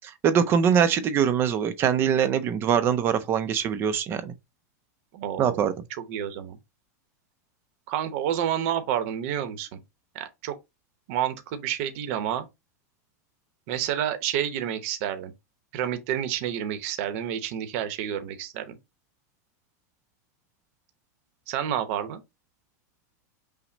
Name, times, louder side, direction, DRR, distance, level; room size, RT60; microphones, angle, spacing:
voice 1, 0.0-4.3 5.4-5.7, right 8 dB, 25° right, 0.4 m, -23 dB
voice 2, 5.1-5.7 6.1-6.6 7.9-9.8 10.1-10.5 11.1-12.5 13.7-15.3 15.7-18.8 21.5-22.2, right 10 dB, 50° right, 0.8 m, -29 dB
5.8 x 2.1 x 3.9 m
supercardioid pair, 160°, 9 cm